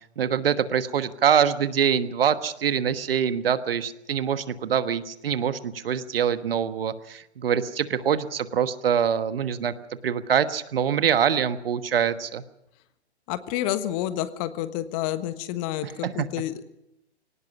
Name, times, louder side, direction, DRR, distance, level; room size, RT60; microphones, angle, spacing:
voice 1, 0.2-9.7 10.0-12.4 15.8-16.3, right 8 dB, 60° right, 12 dB, 1.4 m, -24 dB
voice 2, 13.3-16.6, left 13 dB, 30° left, 12 dB, 1.4 m, -29 dB
23.0 x 18.5 x 6.1 m, 0.83 s
figure-of-eight pair, 115°, 33 cm